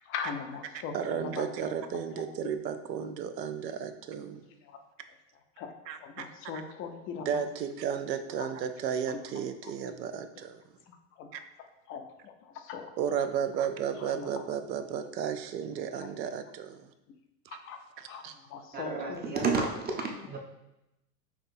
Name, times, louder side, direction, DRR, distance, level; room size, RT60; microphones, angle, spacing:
voice 1, 0.0-2.6 4.6-4.8 5.3-7.8 8.4-8.5 9.1-9.7 10.3-10.4 10.8-13.3 13.9-14.5 16.0-16.1 17.5-17.8 18.1-19.2, left 6 dB, 30° left, 5 dB, 0.4 m, -42 dB
voice 2, 0.9-4.5 5.9-6.3 7.3-10.6 13.0-16.9 18.2-18.3, right 8 dB, 90° right, 9 dB, 0.6 m, -33 dB
voice 3, 18.7-20.4, right 4 dB, 20° right, 1 dB, 0.5 m, -31 dB
5.8 x 2.8 x 2.6 m, 0.89 s
hypercardioid pair, 105°, 49 cm